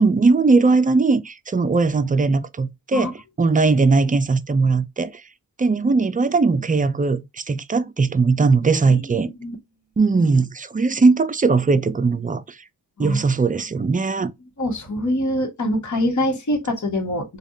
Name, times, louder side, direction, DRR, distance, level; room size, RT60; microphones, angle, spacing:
voice 1, 0.0-3.1 3.4-5.2 5.6-9.3 10.0-12.4 13.0-14.3, right 4 dB, 20° right, 0.4 m, -19 dB
voice 2, 8.9-9.5 13.0-13.2 14.6-17.4, left 1 dB, 45° left, 1.3 m, -24 dB
3.3 x 2.3 x 2.6 m
cardioid pair, 45°, 39 cm